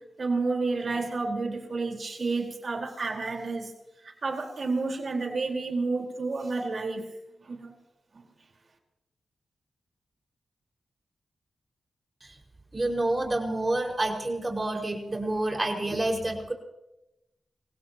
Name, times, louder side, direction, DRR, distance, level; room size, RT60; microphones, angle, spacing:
voice 1, 0.2-3.7 4.0-7.1 7.4-7.7, right 3 dB, 55° right, 1 dB, 4.6 m, -30 dB
voice 2, 12.7-16.5, right 2 dB, 30° right, 1 dB, 5.7 m, -28 dB
27.5 x 17.0 x 3.1 m, 0.93 s
cardioid pair, 45°, 0 cm